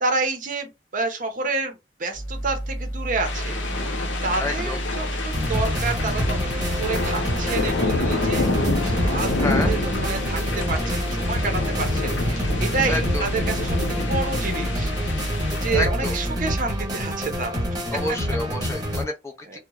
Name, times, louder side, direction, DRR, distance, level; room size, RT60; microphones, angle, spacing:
voice 1, 0.0-3.9 4.2-8.5 8.8-14.9 15.6-17.8 19.5-19.6, right 3 dB, 45° right, 0.7 m, -29 dB
sound 1, 2.1-16.9, right 1 dB, 50° left, 1.0 m, -31 dB
sound 2, 3.2-15.7, left 2 dB, 75° left, 0.7 m, -28 dB
voice 2, 4.4-4.8 9.4-9.7 12.9-13.3 15.7-16.2 17.9-19.6, left 2 dB, 15° left, 0.4 m, -29 dB
sound 3, 5.3-19.0, equal, 20° right, 1.2 m, -27 dB
2.9 x 2.1 x 2.3 m
head